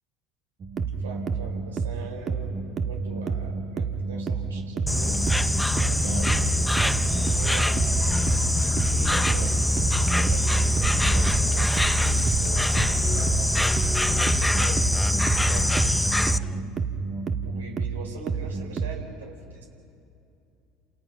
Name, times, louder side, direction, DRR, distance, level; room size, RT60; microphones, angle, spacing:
sound 1, 0.6-19.0, right 5 dB, 45° right, 1.6 m, -30 dB
voice 1, 1.0-5.2 5.8-8.1 8.4-11.7 12.4-14.8 15.4-15.8 16.1-16.7 17.4-19.7, right 5 dB, 85° right, 1 dB, 4.9 m, -42 dB
Insect, 4.9-16.4, left 1 dB, 5° left, 0.7 m, -23 dB
sound 2, 6.7-16.6, left 3 dB, 25° left, 1.7 m, -44 dB
30.0 x 28.0 x 5.7 m, 2.6 s
hypercardioid pair, 75°, 0 cm